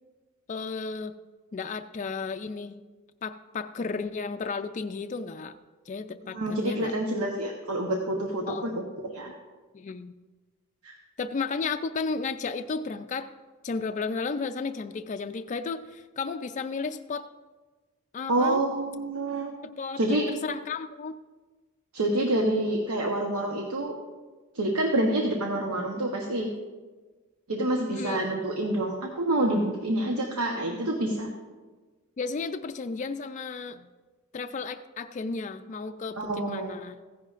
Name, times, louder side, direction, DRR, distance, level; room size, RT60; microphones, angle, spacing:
voice 1, 0.5-1.2 1.5-2.8 3.2-5.6 5.9-6.9 8.5-8.7 9.7-10.1 11.2-13.3 13.6-17.2 18.1-18.6 19.6-21.1 27.9-28.2 32.2-33.9 34.3-37.0, left 4 dB, 35° left, 8 dB, 0.3 m, -33 dB
voice 2, 6.3-8.7 9.0-9.3 10.8-10.9 18.3-19.5 20.0-20.3 21.9-23.9 24.5-26.5 27.5-31.3 36.2-36.7, right 1 dB, 85° right, 1 dB, 1.0 m, -27 dB
15.5 x 10.5 x 2.5 m, 1.3 s
head